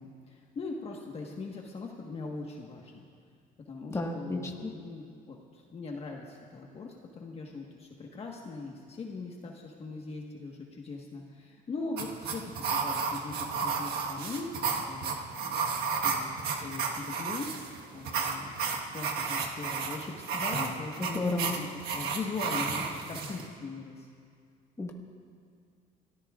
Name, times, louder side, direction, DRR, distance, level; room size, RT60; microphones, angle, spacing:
voice 1, 0.0-3.0 3.6-15.6 16.0-18.6 18.9-24.1, left 3 dB, 35° left, 0 dB, 1.4 m, -40 dB
voice 2, 3.9-4.7 21.1-21.5 24.8-24.9, left 2 dB, 15° left, 1 dB, 1.6 m, -32 dB
sound 1, 12.0-23.5, right 5 dB, 70° right, 1.5 m, -33 dB
29.0 x 14.0 x 2.5 m, 2.2 s
cardioid pair, 110°, 17 cm